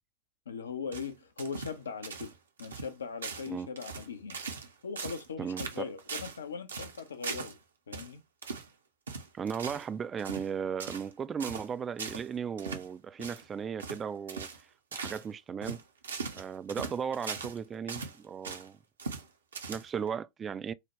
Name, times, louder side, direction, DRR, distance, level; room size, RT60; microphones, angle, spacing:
voice 1, 0.5-2.3 2.6-4.4 4.8-7.6 7.9-8.2, left 6 dB, 70° left, 0.6 m, -40 dB
sound 1, 0.9-1.8 2.0-2.3 2.6-2.9 3.2-3.5 3.8-4.7 5.0-5.3 5.6-6.4 6.7-7.6 7.9-8.1 8.4-8.7 9.1-9.9 10.2-10.5 10.8-11.1 11.4-11.7 12.0-12.3 12.6-12.9 13.2-13.4 13.8-14.0 14.3-14.6 14.9-15.2 15.6-17.6 17.9-18.7 19.0-19.3 19.5-20.1, right 4 dB, 70° right, 0.7 m, -40 dB
voice 2, 5.4-5.9 9.3-14.5 14.9-15.8 16.3-18.8 19.7-20.7, right 7 dB, 20° right, 0.3 m, -36 dB
4.8 x 2.1 x 3.0 m
figure-of-eight pair, 90°, 0 cm